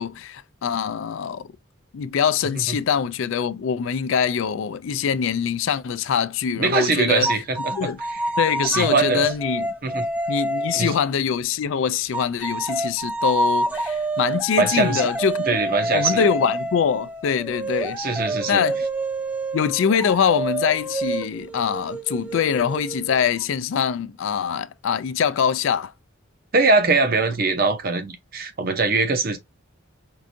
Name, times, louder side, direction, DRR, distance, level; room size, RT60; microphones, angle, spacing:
voice 1, 0.0-1.5 1.9-7.3 7.7-8.0 8.4-9.7 10.3-15.6 15.9-18.0 18.5-18.8 19.5-25.9, left 7 dB, 65° left, 0.3 m, -23 dB
voice 2, 6.6-8.3 8.6-9.3 9.8-10.1 10.7-10.9 14.6-15.1 15.5-16.3 18.0-18.6 26.5-29.4, right 3 dB, 45° right, 0.6 m, -22 dB
sound 1, 7.2-11.2 12.1-23.4, right 1 dB, 5° right, 0.4 m, -27 dB
4.6 x 2.6 x 2.5 m
head